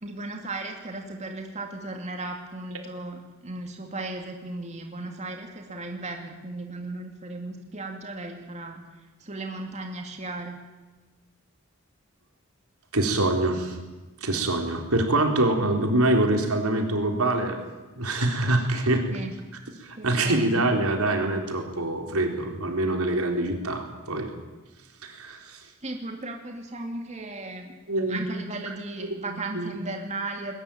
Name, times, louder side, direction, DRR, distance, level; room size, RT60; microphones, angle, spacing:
voice 1, 0.0-8.8 9.2-10.6 19.1-19.4 20.0-20.7 25.8-27.8 28.1-30.5, right 2 dB, 30° right, 3 dB, 2.5 m, -36 dB
voice 2, 12.9-13.8 14.2-17.6 18.0-19.0 19.8-24.3 25.0-25.6 27.9-28.2 29.5-30.0, right 2 dB, 85° right, 3 dB, 4.0 m, -25 dB
21.0 x 19.5 x 9.2 m, 1.2 s
head